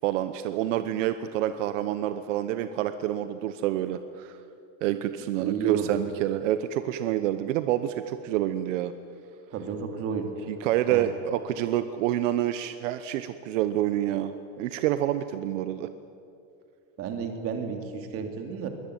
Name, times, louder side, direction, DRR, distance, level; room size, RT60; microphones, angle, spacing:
voice 1, 0.0-4.4 4.8-8.9 10.6-15.9, right 12 dB, 75° right, 11 dB, 1.0 m, -28 dB
voice 2, 5.4-6.0 9.5-10.3 10.9-11.0 17.0-18.7, right 6 dB, 35° right, 5 dB, 2.9 m, -32 dB
22.5 x 18.5 x 9.3 m, 2.6 s
supercardioid pair, 160°, 37 cm